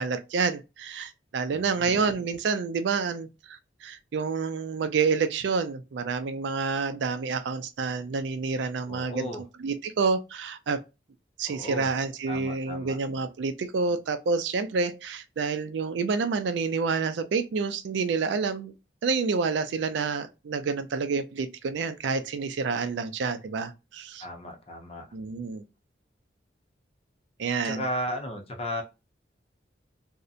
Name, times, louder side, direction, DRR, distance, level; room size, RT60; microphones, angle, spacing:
voice 1, 0.0-10.8 11.4-18.7 19.0-24.3 25.1-25.6 27.4-27.8, right 4 dB, 75° right, 0.4 m, -28 dB
voice 2, 1.5-2.0 8.9-9.4 11.5-11.9 12.3-13.0 24.2-25.1 27.6-28.8, equal, 35° left, 0.6 m, -35 dB
2.7 x 2.0 x 2.4 m
head